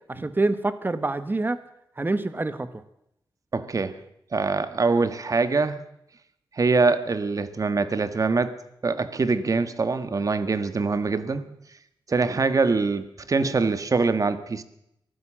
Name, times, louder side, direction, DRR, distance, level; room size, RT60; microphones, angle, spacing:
voice 1, 0.1-1.6 2.0-2.7, right 2 dB, 25° right, 13 dB, 1.4 m, -26 dB
voice 2, 3.5-4.0 4.3-5.8 6.5-8.6 8.8-11.5 12.1-14.6, right 4 dB, 45° right, 12 dB, 1.5 m, -24 dB
23.5 x 15.0 x 7.5 m, 0.80 s
wide cardioid pair, 115°, 8 cm